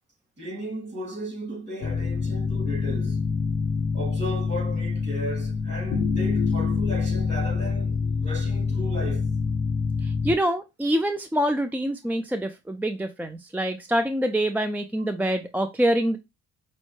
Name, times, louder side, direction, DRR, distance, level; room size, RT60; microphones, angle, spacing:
voice 1, 0.4-3.2 3.9-7.9 8.2-9.3, equal, 35° right, 2.4 m, -35 dB
sound 1, 1.8-10.3, left 5 dB, 60° left, 0.7 m, -26 dB
voice 2, 10.0-16.2, right 1 dB, 5° right, 0.3 m, -25 dB
5.2 x 2.1 x 3.1 m
cardioid pair, 90°, 30 cm